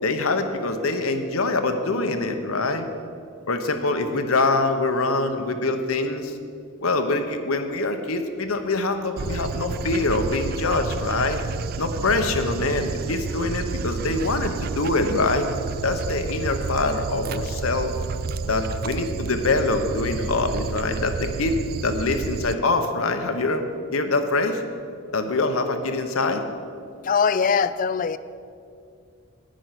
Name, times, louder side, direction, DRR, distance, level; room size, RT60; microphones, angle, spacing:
voice 1, 0.0-2.9 3.5-6.4 6.8-11.4 11.8-15.5 15.8-17.9 18.5-23.6 23.9-24.6 25.1-26.4, left 3 dB, 80° left, 6 dB, 0.9 m, -24 dB
Dog, 9.2-22.5, right 5 dB, 45° right, 0.3 m, -30 dB
voice 2, 27.0-28.2, left 6 dB, 40° left, 15 dB, 0.3 m, -21 dB
10.0 x 9.4 x 5.9 m, 2.4 s
head